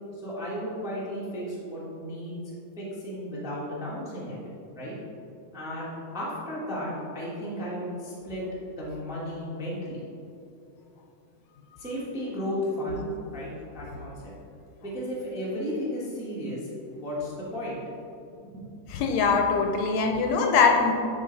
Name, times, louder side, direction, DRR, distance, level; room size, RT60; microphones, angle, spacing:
voice 1, 0.1-2.4 2.8-4.4 4.7-4.9 5.5-10.0 11.8-13.1 13.3-14.3 14.8-17.8 18.4-18.6, equal, 5° right, -7 dB, 0.4 m, -34 dB
voice 2, 18.9-20.9, left 5 dB, 75° left, 2 dB, 1.8 m, -22 dB
10.0 x 4.2 x 4.0 m, 2.7 s
omnidirectional pair, 3.3 m